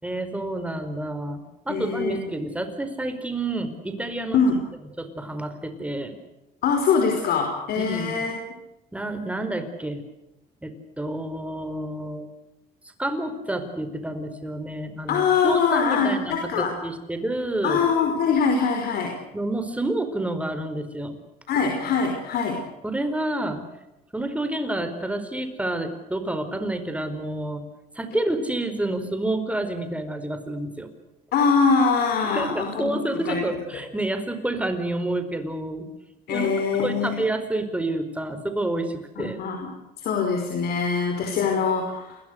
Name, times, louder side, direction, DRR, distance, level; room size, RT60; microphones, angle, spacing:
voice 1, 0.0-4.4 5.0-6.2 7.8-8.2 8.9-10.0 10.6-12.3 13.0-17.8 19.3-21.2 22.8-23.6 24.1-27.6 27.9-30.9 32.2-35.9 36.3-36.5 36.8-39.4 41.2-41.4, right 1 dB, 10° right, 8 dB, 4.8 m, -29 dB
voice 2, 1.7-2.2 4.3-4.6 6.6-8.4 15.1-16.8 17.6-19.1 21.5-22.6 31.3-33.4 36.3-37.2 39.2-39.7 40.0-42.2, left 5 dB, 70° left, 3 dB, 5.3 m, -23 dB
29.5 x 22.5 x 6.7 m, 0.94 s
cardioid pair, 110°, 17 cm